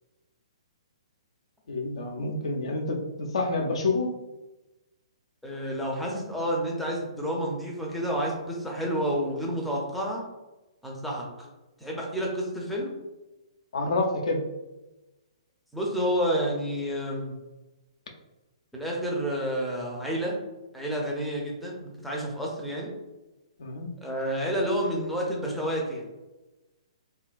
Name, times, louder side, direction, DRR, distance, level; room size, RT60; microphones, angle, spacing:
voice 1, 1.7-4.1 13.7-14.4 23.6-23.9, left 2 dB, 75° left, 2 dB, 0.4 m, -28 dB
voice 2, 5.4-10.2 10.8-11.3 11.8-12.9 15.7-17.3 18.7-20.4 20.7-22.9 24.0-26.1, equal, ahead, -3 dB, 0.5 m, -29 dB
2.8 x 2.3 x 2.4 m, 1.1 s
hypercardioid pair, 135°, 3 cm